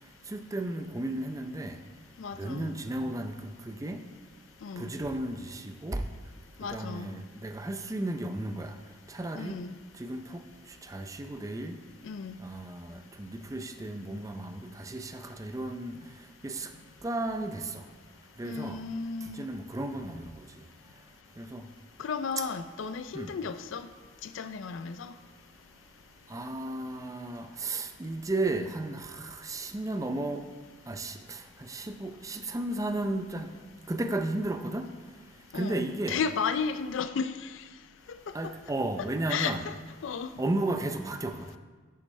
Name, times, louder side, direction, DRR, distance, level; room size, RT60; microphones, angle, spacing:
voice 1, 0.3-1.8 2.4-3.3 3.7-4.0 4.8-6.0 6.7-8.7 9.1-9.6 10.0-10.4 10.8-11.8 12.4-16.0 16.4-16.7 17.0-17.8 18.4-18.8 19.4-20.3 21.4-21.6 22.4-22.5 23.1-23.3 26.3-30.4 30.9-31.4 31.7-33.5 33.9-34.9 35.5-36.2 38.3-39.6 40.4-41.4, right 2 dB, 15° right, 7 dB, 0.4 m, -34 dB
voice 2, 2.2-2.7 4.6-4.9 6.6-7.1 9.3-9.8 12.0-12.4 18.4-19.5 22.0-23.9 24.2-25.1 35.5-37.5 38.1-38.2 38.4-38.5 39.0-39.7 40.0-40.3, left 5 dB, 70° left, 11 dB, 0.4 m, -34 dB
10.5 x 6.7 x 3.2 m, 1.4 s
head